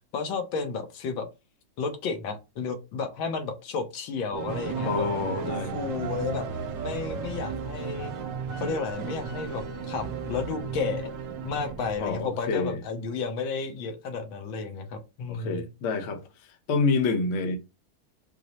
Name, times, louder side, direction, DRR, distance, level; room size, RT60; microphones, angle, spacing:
voice 1, 0.1-1.3 1.8-5.1 5.4-6.5 6.8-8.1 8.6-11.1 11.4-15.6, left 4 dB, 80° left, 1.5 m, -32 dB
sound 1, 4.3-12.8, right 7 dB, 90° right, 0.8 m, -37 dB
sound 2, 4.5-11.0, right 3 dB, 65° right, 1.4 m, -38 dB
voice 2, 4.8-5.7 12.0-12.8 15.3-16.2 16.7-17.6, left 4 dB, 55° left, 0.9 m, -27 dB
4.7 x 2.0 x 4.0 m
omnidirectional pair, 2.2 m